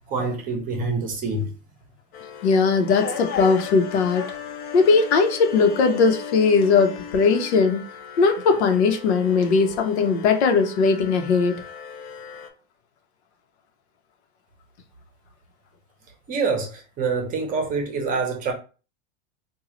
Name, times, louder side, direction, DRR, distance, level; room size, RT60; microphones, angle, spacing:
voice 1, 0.1-1.5 16.3-18.5, right 4 dB, 25° right, 0.8 m, -26 dB
sound 1, 2.1-12.5, left 6 dB, 30° left, 0.4 m, -36 dB
voice 2, 2.4-4.2 4.7-7.8 8.2-11.6, left 4 dB, 90° left, 0.9 m, -19 dB
3.7 x 2.4 x 3.1 m
supercardioid pair, 150°, 33 cm